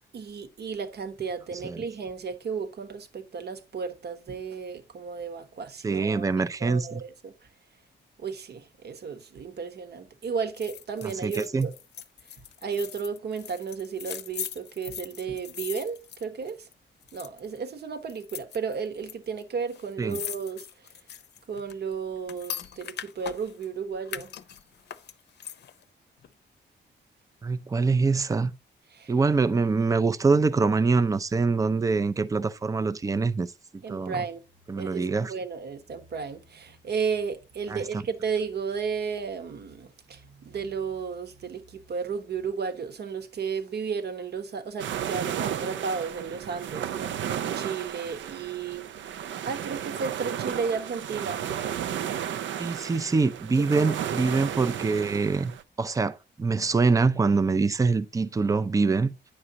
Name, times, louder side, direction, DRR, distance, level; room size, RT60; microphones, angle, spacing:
voice 1, 0.1-6.3 6.6-7.3 8.2-11.7 12.6-16.7 17.1-20.7 21.5-24.3 28.9-29.1 33.8-34.4 34.8-35.0 35.3-48.8 49.4-51.4 53.7-54.0, right 5 dB, 60° right, 1.1 m, -33 dB
voice 2, 5.8-7.0 11.0-11.7 20.0-20.2 27.4-28.5 29.1-33.5 33.9-34.2 34.7-35.3 37.7-37.8 52.6-55.5 55.8-59.1, right 4 dB, 15° right, 0.4 m, -24 dB
sound 1, 10.6-16.7 17.0-17.6 18.1-19.1 19.4-19.5 19.7-23.7 24.1-25.8 26.2-26.3, left 9 dB, 60° left, 0.6 m, -40 dB
sound 2, 44.8-55.6, right 9 dB, 80° right, 0.5 m, -33 dB
9.8 x 6.3 x 2.8 m
cardioid pair, 125°, 19 cm